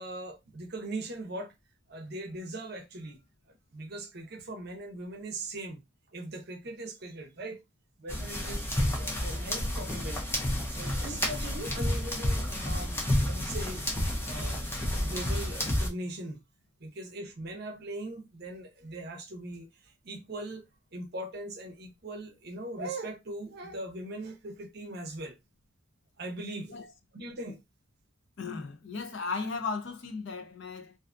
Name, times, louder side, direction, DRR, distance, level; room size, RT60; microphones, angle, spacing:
voice 1, 0.0-1.5 1.9-3.2 3.5-5.8 6.1-7.6 8.0-10.2 10.7-13.9 14.2-14.6 14.9-16.4 16.8-25.4 26.2-26.7 27.1-27.6, right 1 dB, 50° right, 0.6 m, -40 dB
sound 1, 8.1-15.9, left 1 dB, 10° left, 0.5 m, -30 dB
voice 2, 28.4-31.0, left 4 dB, 60° left, 0.6 m, -36 dB
2.5 x 2.3 x 2.4 m
head